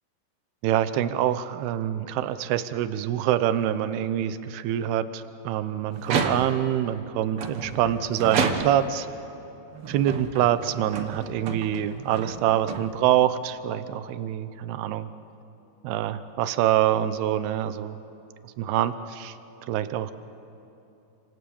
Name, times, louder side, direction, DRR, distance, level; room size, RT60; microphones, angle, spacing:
voice 1, 0.6-9.1 9.9-15.1 15.8-18.0 18.6-19.3 19.7-20.1, right 11 dB, 80° right, 12 dB, 2.9 m, -25 dB
sound 1, 6.0-6.8 7.4-9.0 9.7-13.3, right 5 dB, 60° right, 1.5 m, -31 dB
29.5 x 27.5 x 7.1 m, 2.9 s
omnidirectional pair, 4.7 m